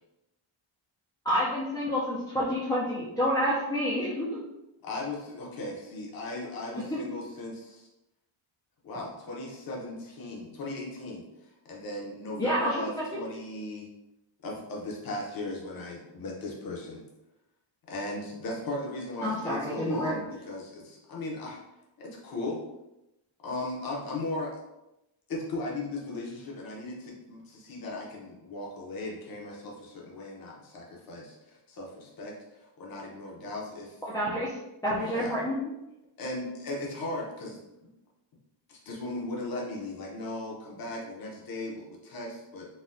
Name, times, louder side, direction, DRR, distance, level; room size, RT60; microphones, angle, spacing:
voice 1, 1.2-4.4 6.8-7.0 12.4-13.1 19.2-20.1 34.1-34.6 34.8-35.6, equal, 10° left, -8 dB, 0.4 m, -28 dB
voice 2, 4.8-7.9 8.8-11.3 11.6-13.9 14.4-17.0 17.9-21.6 22.0-22.6 23.4-24.6 25.3-34.0 35.0-35.3 36.2-37.6 38.7-42.7, left 2 dB, 45° left, -3 dB, 0.7 m, -37 dB
4.0 x 2.2 x 2.5 m, 0.92 s
wide cardioid pair, 170°, 49 cm